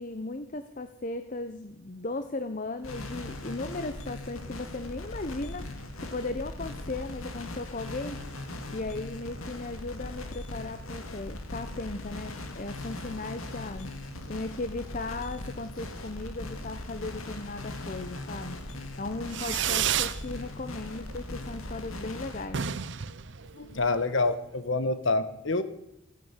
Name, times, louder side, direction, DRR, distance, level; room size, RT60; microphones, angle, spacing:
voice 1, 0.0-8.2 8.7-13.9 14.3-22.6, left 2 dB, 40° left, 9 dB, 0.8 m, -37 dB
sound 1, 2.8-22.4, left 1 dB, 85° left, 2.3 m, -39 dB
Fireworks, 19.3-20.2 20.6-21.1 21.4-21.5 21.7-21.8 22.1-22.2 22.4-24.1, right 9 dB, 55° right, 0.6 m, -30 dB
voice 2, 23.5-25.6, left 3 dB, 65° left, 12 dB, 1.4 m, -27 dB
16.5 x 10.0 x 8.3 m, 0.86 s
head